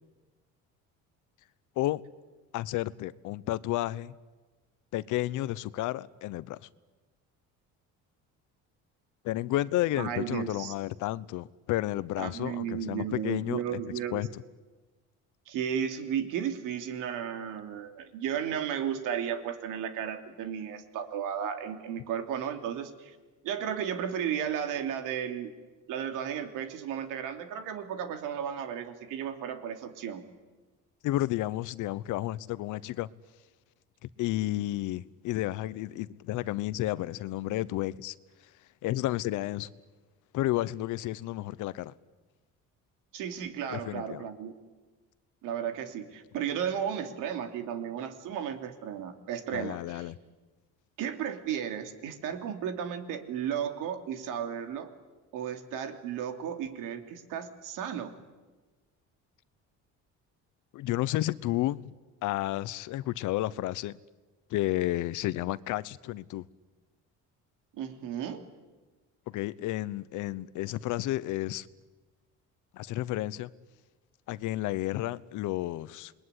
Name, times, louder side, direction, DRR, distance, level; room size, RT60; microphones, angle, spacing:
voice 1, 2.5-4.1 4.9-6.7 9.2-13.8 14.1-14.3 31.0-33.1 34.2-38.1 38.8-39.7 40.3-41.9 43.7-44.2 49.5-50.1 60.7-61.9 62.2-64.0 64.5-66.5 69.3-71.7 72.7-73.5 74.3-76.1, left 16 dB, 75° left, 18 dB, 0.9 m, -31 dB
voice 2, 9.9-10.7 12.2-14.2 15.5-23.2 23.4-25.5 25.9-30.2 43.1-44.5 45.4-50.1 51.0-54.9 55.3-58.1 67.7-68.4, right 8 dB, 85° right, 6 dB, 3.0 m, -34 dB
28.0 x 21.5 x 9.9 m, 1.3 s
cardioid pair, 130°, 31 cm